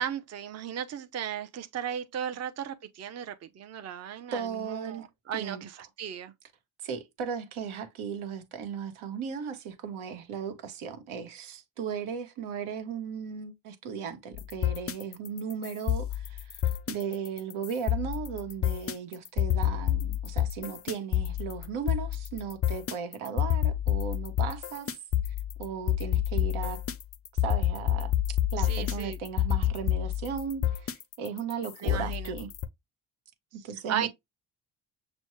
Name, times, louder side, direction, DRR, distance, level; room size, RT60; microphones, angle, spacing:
voice 1, 0.0-6.3 28.7-29.2 31.8-32.3 33.9-34.1, right 9 dB, 35° right, 0.6 m, -35 dB
voice 2, 4.3-5.6 6.8-16.6 16.9-24.9 25.6-26.8 27.4-32.5 33.6-34.1, right 7 dB, 85° right, 1.1 m, -36 dB
sound 1, 14.3-32.7, left 12 dB, 30° left, 0.4 m, -29 dB
6.1 x 2.2 x 3.0 m
cardioid pair, 85°, 48 cm